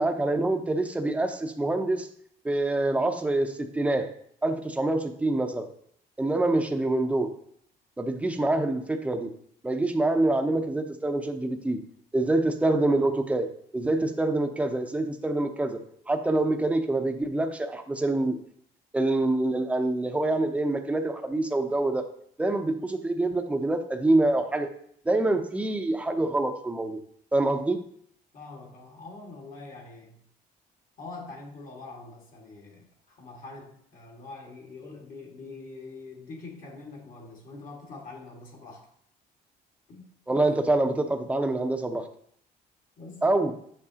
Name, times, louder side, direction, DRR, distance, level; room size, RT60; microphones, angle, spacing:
voice 1, 0.0-2.1 2.4-4.1 4.4-5.7 6.2-7.3 8.0-9.3 9.6-11.8 12.1-13.5 13.7-15.8 16.1-18.4 18.9-22.1 22.4-24.7 25.1-27.0 27.3-27.8 40.3-42.1 43.2-43.5, right 2 dB, 10° right, 6 dB, 0.7 m, -26 dB
voice 2, 28.3-30.2 31.0-38.9 39.9-40.5 43.0-43.3, left 3 dB, 55° left, 0 dB, 1.9 m, -44 dB
7.1 x 5.8 x 2.9 m, 0.65 s
cardioid pair, 110°, 17 cm